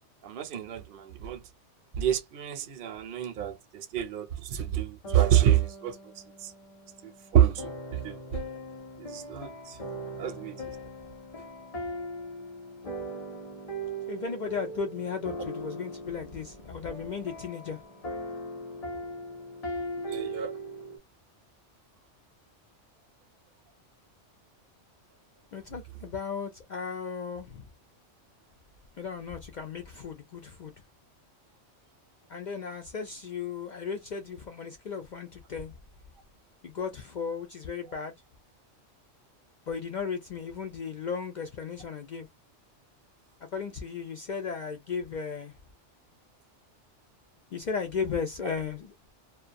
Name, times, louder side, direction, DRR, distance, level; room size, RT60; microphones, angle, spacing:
voice 1, 0.2-1.4 1.9-6.0 6.4-6.5 7.3-8.2 9.0-9.8 10.2-10.6 20.0-20.5, right 11 dB, 55° right, 0.7 m, -27 dB
sound 1, 5.0-21.0, right 1 dB, 35° left, 0.8 m, -39 dB
voice 2, 14.1-17.8 25.5-27.7 29.0-30.7 32.3-35.7 36.6-38.1 39.7-42.3 43.5-45.5 47.5-48.9, left 5 dB, 60° left, 0.4 m, -35 dB
2.3 x 2.2 x 2.5 m
omnidirectional pair, 1.2 m